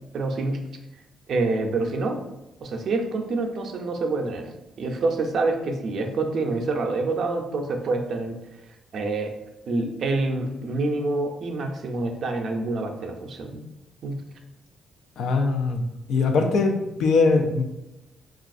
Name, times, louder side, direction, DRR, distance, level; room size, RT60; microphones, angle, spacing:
voice 1, 0.1-0.6 1.3-2.2 2.6-4.5 4.8-8.4 8.9-9.3 9.7-13.6 14.0-14.2, right 3 dB, 60° right, 3 dB, 0.5 m, -26 dB
voice 2, 15.2-15.8 16.1-17.6, left 4 dB, 75° left, 4 dB, 0.4 m, -21 dB
3.9 x 2.4 x 2.5 m, 0.94 s
cardioid pair, 90°, 0 cm